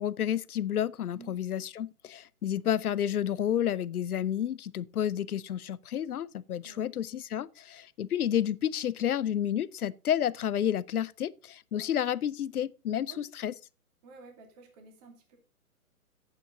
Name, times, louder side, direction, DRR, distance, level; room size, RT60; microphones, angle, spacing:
voice 1, 0.0-13.5, left 10 dB, 70° left, 0.7 m, -30 dB
voice 2, 14.0-15.4, right 4 dB, 25° right, 2.3 m, -52 dB
11.5 x 8.6 x 3.9 m
hypercardioid pair, 155°, 46 cm